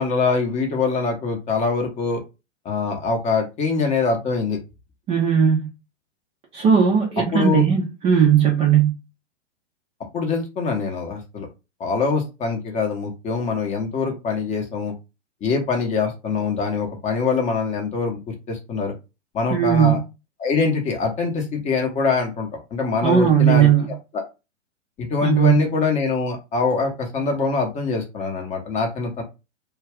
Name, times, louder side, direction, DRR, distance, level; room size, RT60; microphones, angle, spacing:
voice 1, 0.0-2.2 2.6-4.6 7.3-7.6 10.1-11.5 11.8-14.9 15.4-18.9 19.3-20.0 20.4-23.7 24.1-24.2 25.0-29.2, left 4 dB, 20° left, 0.7 m, -23 dB
voice 2, 5.1-5.7 6.5-9.0 19.5-20.0 23.0-24.0 25.2-25.6, right 8 dB, 15° right, 0.5 m, -17 dB
2.4 x 2.2 x 3.4 m
figure-of-eight pair, 110°, 36 cm